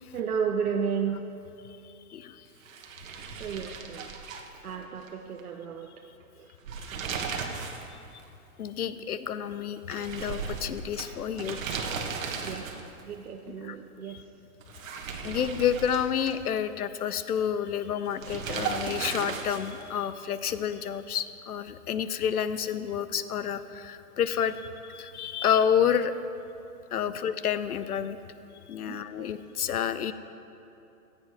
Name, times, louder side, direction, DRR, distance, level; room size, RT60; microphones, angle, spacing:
voice 1, 0.1-1.2 3.4-4.1 4.6-6.0 6.4-6.5 12.4-14.3 27.1-27.2 28.9-29.3, right 6 dB, 80° right, 3 dB, 0.9 m, -33 dB
sound 1, 2.6-5.1 5.4-5.5 6.5-7.9 8.2-8.3 9.9-13.0 14.6-16.6 18.2-19.9, right 5 dB, 60° right, 1.4 m, -36 dB
voice 2, 8.6-11.8 13.7-13.8 15.2-26.1 26.9-28.2 28.7-30.1, left 8 dB, 80° left, 13 dB, 0.7 m, -29 dB
16.0 x 7.9 x 4.7 m, 2.8 s
hypercardioid pair, 135°, 44 cm